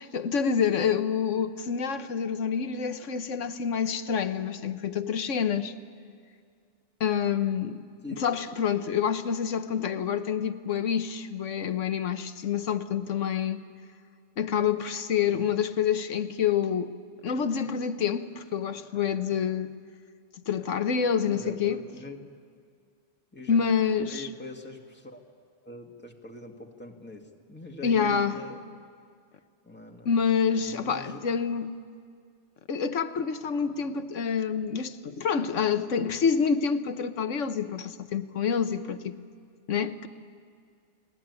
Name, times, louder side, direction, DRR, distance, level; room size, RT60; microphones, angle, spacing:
voice 1, 0.1-5.7 7.0-7.8 8.2-13.6 14.4-16.9 17.2-19.7 20.5-21.8 23.5-24.3 27.8-28.4 30.0-31.7 32.7-39.2 39.7-40.1, left 7 dB, 85° left, 1.4 m, -27 dB
voice 2, 21.3-22.3 23.3-23.6 24.1-25.2 25.7-28.6 29.6-30.1 30.6-31.2, left 2 dB, 10° left, 2.0 m, -43 dB
30.0 x 20.0 x 9.7 m
omnidirectional pair, 1.2 m